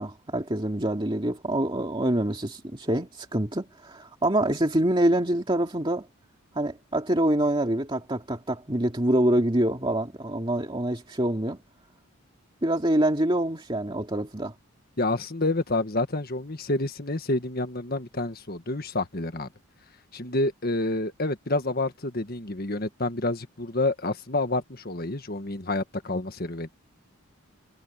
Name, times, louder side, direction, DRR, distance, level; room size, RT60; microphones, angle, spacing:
voice 1, 0.0-6.1 6.5-11.6 12.6-14.5, right 1 dB, 25° right, 2.3 m, -25 dB
voice 2, 15.0-19.5 20.1-26.7, left 2 dB, 45° left, 1.6 m, -28 dB
head